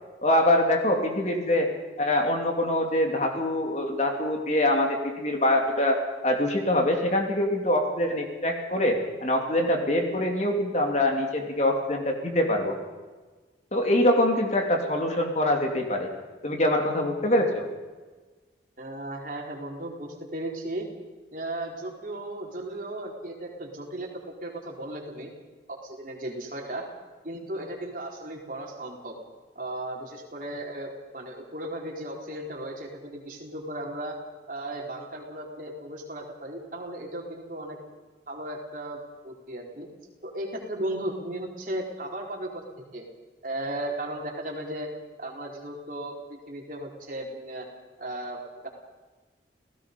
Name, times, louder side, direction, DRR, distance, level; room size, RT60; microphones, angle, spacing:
voice 1, 0.2-1.7 2.0-12.8 13.7-16.1 16.4-17.7, left 1 dB, 40° left, 2 dB, 2.9 m, -24 dB
voice 2, 18.8-20.9 21.3-25.3 25.7-26.9 27.2-29.1 29.5-34.2 34.5-37.8 38.3-39.9 40.2-42.6 42.9-43.0 43.4-44.9 45.2-47.7 48.0-48.7, right 1 dB, 50° right, 0 dB, 4.2 m, -36 dB
29.5 x 17.0 x 5.4 m, 1.3 s
head